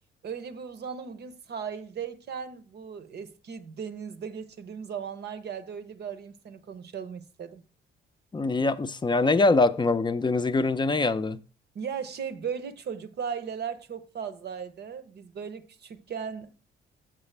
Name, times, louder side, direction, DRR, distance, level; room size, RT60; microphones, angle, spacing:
voice 1, 0.2-7.6 11.7-16.6, right 7 dB, 55° right, 0.8 m, -37 dB
voice 2, 8.3-11.4, left 3 dB, 25° left, 0.5 m, -23 dB
7.5 x 7.0 x 3.3 m
cardioid pair, 90°, 20 cm